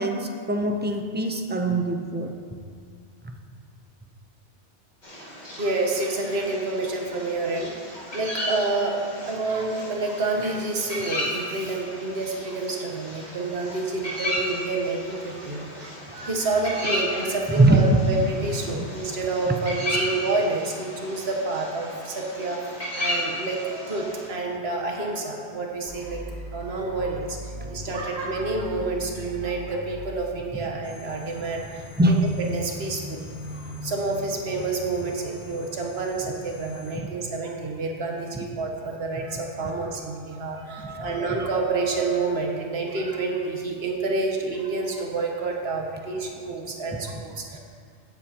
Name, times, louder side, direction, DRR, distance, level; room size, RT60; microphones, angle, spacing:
voice 1, 0.0-2.3 3.2-3.4 7.6-7.7 17.6-17.8 18.7-18.9 19.5-19.6 32.0-32.2 40.8-41.1, right 2 dB, 15° right, 3 dB, 0.3 m, -22 dB
sound 1, 5.0-24.3, left 1 dB, 40° left, 2.3 m, -34 dB
voice 2, 5.6-26.2 26.5-47.6, right 3 dB, 60° right, 1 dB, 1.4 m, -29 dB
sound 2, 25.9-31.8, left 1 dB, 45° right, 1.4 m, -40 dB
sound 3, 30.8-36.9, left 1 dB, 80° left, 2.2 m, -41 dB
16.0 x 7.9 x 2.9 m, 2.2 s
omnidirectional pair, 1.2 m